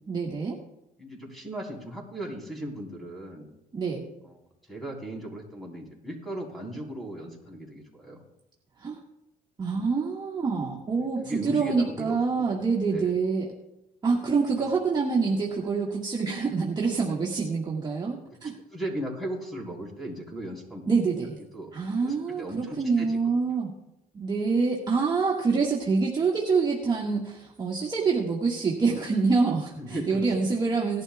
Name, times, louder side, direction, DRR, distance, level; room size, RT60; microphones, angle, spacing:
voice 1, 0.1-0.6 3.7-4.1 8.8-9.0 9.6-13.5 14.0-18.5 20.9-21.4 21.7-23.7 24.1-31.0, right 4 dB, 25° right, -4 dB, 1.7 m, -26 dB
voice 2, 1.0-3.5 4.2-4.4 4.7-8.2 11.0-12.6 12.9-13.2 14.6-14.7 18.7-20.8 21.5-21.7 22.0-23.2 29.8-30.3, right 1 dB, ahead, -1 dB, 4.0 m, -37 dB
18.5 x 11.5 x 2.3 m, 0.88 s
cardioid pair, 110°, 17 cm